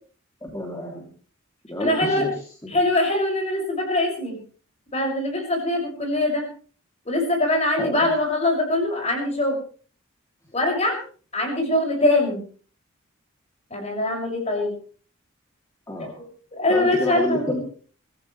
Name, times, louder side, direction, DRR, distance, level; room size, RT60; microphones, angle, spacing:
voice 1, 0.4-1.1 1.7-2.3 2.6-2.7 7.8-8.0 15.9-16.2 16.7-17.6, left 1 dB, 15° left, -1 dB, 3.0 m, -28 dB
voice 2, 1.8-2.3 2.7-4.4 4.9-6.5 7.0-9.6 10.5-11.0 11.3-12.4 13.7-14.7 16.2-17.6, left 1 dB, 35° left, 1 dB, 6.5 m, -23 dB
25.0 x 14.5 x 3.3 m, 0.42 s
head